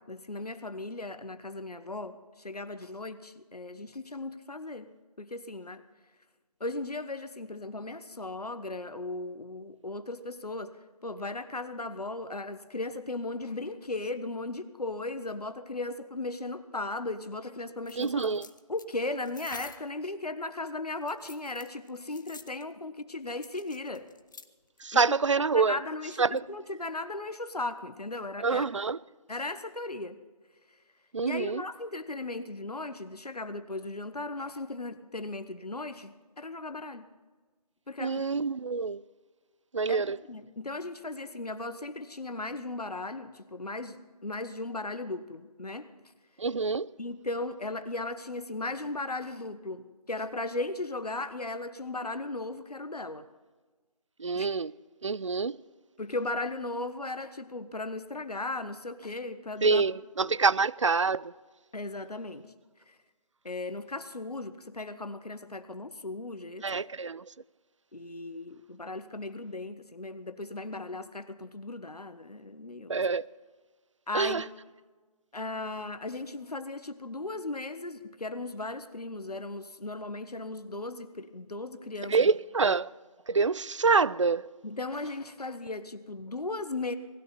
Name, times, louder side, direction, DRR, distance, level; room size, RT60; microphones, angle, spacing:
voice 1, 0.0-4.9 5.2-5.8 6.6-18.3 18.7-24.1 24.9-25.0 25.5-28.7 29.3-30.2 31.2-37.1 37.9-38.2 39.9-45.9 47.0-53.2 54.3-54.5 56.0-59.8 60.2-60.4 61.7-62.5 62.9-63.0 63.4-66.8 67.9-73.0 74.1-74.5 75.3-82.3 82.6-82.8 84.6-87.0, left 2 dB, 80° left, 1.3 m, -37 dB
sound 1, 17.8-19.9 21.0-22.6 23.4-24.5 24.8-24.9, left 4 dB, 30° left, 0.6 m, -48 dB
voice 2, 18.0-18.5 24.8-25.8 26.2-26.4 28.4-29.0 31.1-31.6 38.0-39.0 39.7-40.2 46.4-46.9 54.2-54.7 55.0-55.6 59.6-61.3 66.6-67.2 72.9-73.3 74.1-74.4 82.1-82.9 83.3-84.4, right 4 dB, 55° right, 0.4 m, -26 dB
19.5 x 16.0 x 4.3 m
figure-of-eight pair, 160°, 19 cm